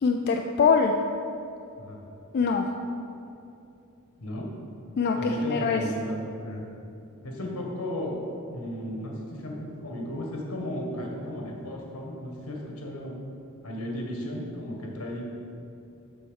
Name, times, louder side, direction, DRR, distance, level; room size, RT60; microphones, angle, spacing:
voice 1, 0.0-0.9 2.3-2.7 5.0-5.8, left 5 dB, 45° left, 3 dB, 0.3 m, -23 dB
voice 2, 4.2-4.5 5.2-6.7 7.2-8.1 8.5-13.2 13.6-15.2, left 1 dB, 80° left, -1 dB, 1.5 m, -34 dB
7.0 x 4.4 x 6.4 m, 2.7 s
head